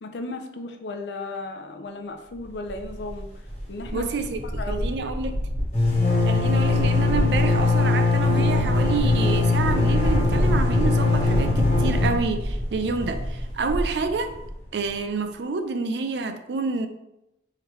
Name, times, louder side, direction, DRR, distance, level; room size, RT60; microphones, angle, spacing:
voice 1, 0.0-3.3 3.7-4.1 4.6-4.9, left 2 dB, 80° left, 0.5 m, -35 dB
sound 1, 2.7-3.2 3.5-3.6 3.8-14.5, left 2 dB, 40° left, 1.1 m, -22 dB
voice 2, 3.9-5.5 6.2-14.4 14.7-16.9, right 4 dB, 75° right, 0.4 m, -28 dB
3.7 x 3.3 x 3.1 m
head